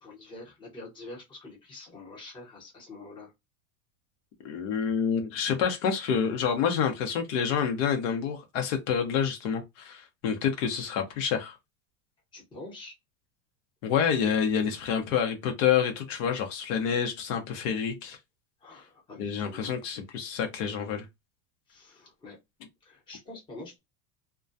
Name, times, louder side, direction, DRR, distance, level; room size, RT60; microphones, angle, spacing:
voice 1, 0.0-3.3 12.3-12.9 18.6-19.9 21.7-22.4 22.8-23.8, left 2 dB, 10° left, 0.8 m, -46 dB
voice 2, 4.4-11.6 13.8-18.2 19.2-21.1, left 7 dB, 65° left, 0.8 m, -28 dB
2.3 x 2.2 x 2.5 m
supercardioid pair, 155°, 41 cm